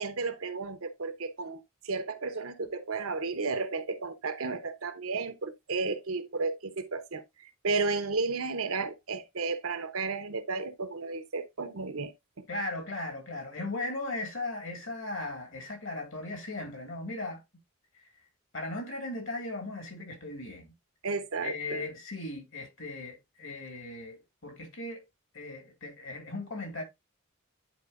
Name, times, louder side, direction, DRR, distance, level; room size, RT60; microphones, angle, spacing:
voice 1, 0.0-12.4 21.0-21.8, right 4 dB, 85° right, 0.9 m, -33 dB
voice 2, 12.5-17.4 18.5-20.7 21.4-25.0 25.3-26.8, left 2 dB, 65° left, 2.1 m, -37 dB
10.5 x 4.4 x 2.5 m
head